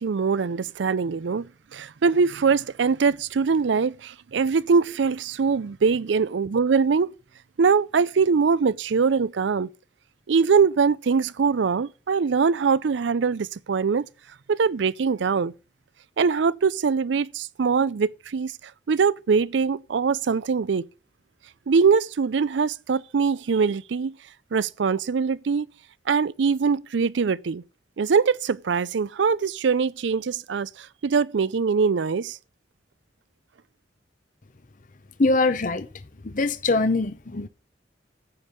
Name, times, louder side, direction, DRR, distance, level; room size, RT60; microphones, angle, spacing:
voice 1, 0.0-7.1 7.6-9.7 10.3-14.0 14.5-15.5 16.2-18.5 18.9-20.8 21.7-24.2 24.5-25.7 26.1-27.6 28.0-32.4, right 5 dB, 70° right, 0.5 m, -22 dB
voice 2, 35.2-35.9 36.3-37.5, left 3 dB, 45° left, 0.7 m, -22 dB
9.5 x 5.4 x 8.0 m
head